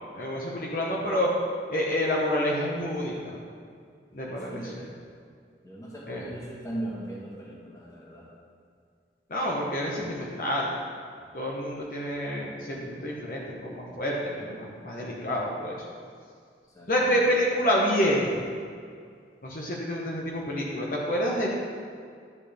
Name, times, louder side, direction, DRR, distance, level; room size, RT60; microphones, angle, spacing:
voice 1, 0.1-1.3 1.7-3.4 4.1-4.8 6.1-6.2 9.3-10.7 11.3-15.8 16.9-18.4 19.4-21.5, equal, 50° left, -3 dB, 1.1 m, -28 dB
voice 2, 4.3-4.9 5.6-8.3 16.7-17.4, right 1 dB, 20° left, -4 dB, 1.5 m, -39 dB
11.0 x 7.3 x 3.5 m, 2.2 s
head